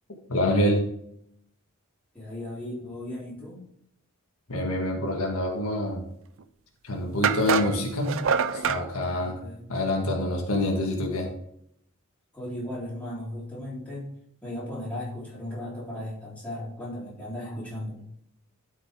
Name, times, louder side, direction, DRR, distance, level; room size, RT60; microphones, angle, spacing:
voice 1, 0.3-0.8 4.5-6.0 6.8-8.2 8.5-9.4 9.7-11.3, left 1 dB, 70° left, 0 dB, 1.7 m, -26 dB
voice 2, 2.1-3.6 9.2-9.6 12.3-14.1 14.4-18.0, left 1 dB, 5° left, -8 dB, 3.9 m, -36 dB
sound 1, 6.4-6.5 7.2-8.8, right 6 dB, 60° right, 0.5 m, -25 dB
12.0 x 5.5 x 3.7 m, 0.72 s
head